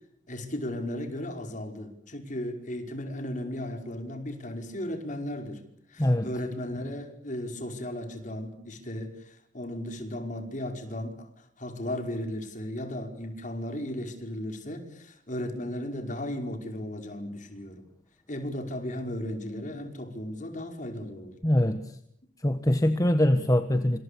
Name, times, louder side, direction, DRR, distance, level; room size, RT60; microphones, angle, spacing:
voice 1, 0.3-5.6 5.9-17.9 18.3-21.4, left 1 dB, 40° left, 5 dB, 5.3 m, -35 dB
voice 2, 6.0-6.3 21.4-22.0 22.4-24.0, left 1 dB, 15° left, 9 dB, 1.4 m, -23 dB
28.0 x 27.0 x 6.9 m, 0.70 s
head